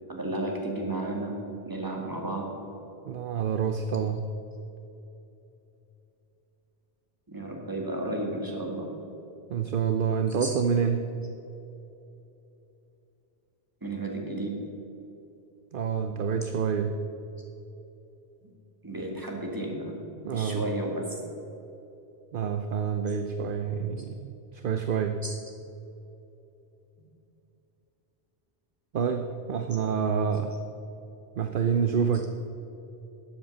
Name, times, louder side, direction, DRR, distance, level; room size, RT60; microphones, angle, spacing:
voice 1, 0.1-1.4 1.6-2.6 7.3-8.9 10.3-10.6 13.8-14.7 18.4-18.5 18.8-20.0 20.3-21.1 23.1-23.2 25.2-25.4, right 1 dB, 20° right, 0 dB, 2.0 m, -33 dB
voice 2, 3.1-4.2 9.5-11.0 15.7-16.9 20.2-20.6 22.3-24.3 24.6-25.2 28.9-30.5 31.4-32.3, right 7 dB, 55° right, 7 dB, 0.8 m, -27 dB
13.0 x 7.7 x 7.2 m, 3.0 s
omnidirectional pair, 1.1 m